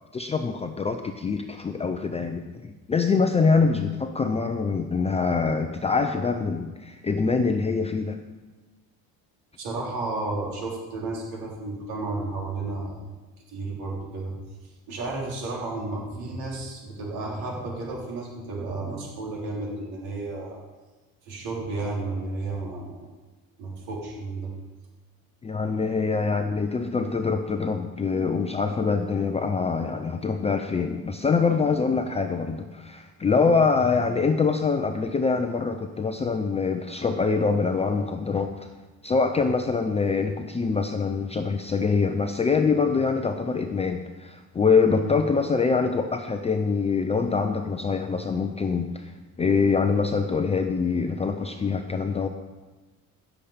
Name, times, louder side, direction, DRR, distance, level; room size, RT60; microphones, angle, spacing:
voice 1, 0.1-8.2 25.4-38.7 39.0-49.1 49.4-52.3, left 4 dB, 20° left, 6 dB, 0.5 m, -24 dB
voice 2, 9.6-13.1 13.5-14.3 14.9-20.6 21.2-23.1 23.6-24.5 33.3-33.6 44.9-45.1, right 2 dB, 90° right, -3 dB, 4.3 m, -32 dB
17.0 x 7.3 x 5.1 m, 1.2 s
cardioid pair, 155°, 36 cm